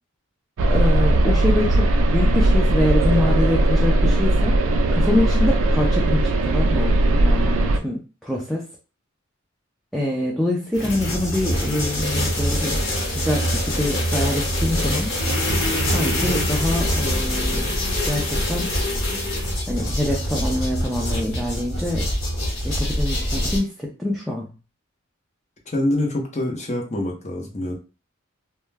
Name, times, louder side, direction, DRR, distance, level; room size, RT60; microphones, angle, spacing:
sound 1, 0.6-7.8, right 1 dB, 75° right, 0.3 m, -18 dB
voice 1, 0.7-4.6 4.9-8.7 9.9-12.8 13.1-15.1 15.8-17.8 18.0-18.7 19.7-22.1 22.6-24.5, left 1 dB, ahead, -2 dB, 0.3 m, -25 dB
sound 2, 10.7-23.6, equal, 65° left, 1.1 m, -24 dB
voice 2, 25.7-27.7, left 1 dB, 35° left, -1 dB, 0.6 m, -25 dB
2.2 x 2.1 x 3.2 m, 0.33 s
head